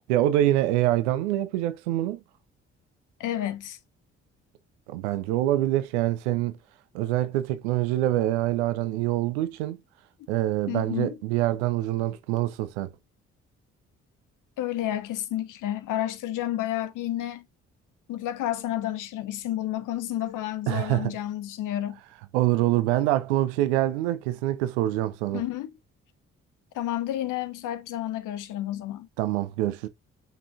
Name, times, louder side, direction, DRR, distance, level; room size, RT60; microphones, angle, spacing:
voice 1, 0.1-2.2 4.9-6.6 6.9-9.8 10.3-12.9 20.7-21.1 22.3-25.4 29.2-29.9, right 14 dB, 70° right, 0.8 m, -25 dB
voice 2, 3.2-3.8 10.7-11.1 14.6-17.4 18.1-22.0 25.3-25.7 26.7-29.1, left 13 dB, 60° left, 1.2 m, -30 dB
8.6 x 6.2 x 2.5 m
figure-of-eight pair, 40°, 36 cm